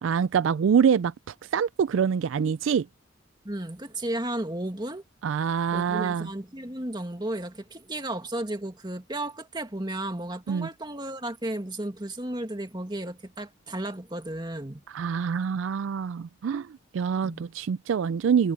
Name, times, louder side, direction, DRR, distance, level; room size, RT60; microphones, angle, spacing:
voice 1, 0.0-2.9 5.2-6.3 10.5-10.7 14.9-18.5, right 7 dB, 75° right, 0.3 m, -25 dB
voice 2, 3.4-5.0 5.7-14.8 17.2-17.4, right 1 dB, 20° right, 2.0 m, -34 dB
head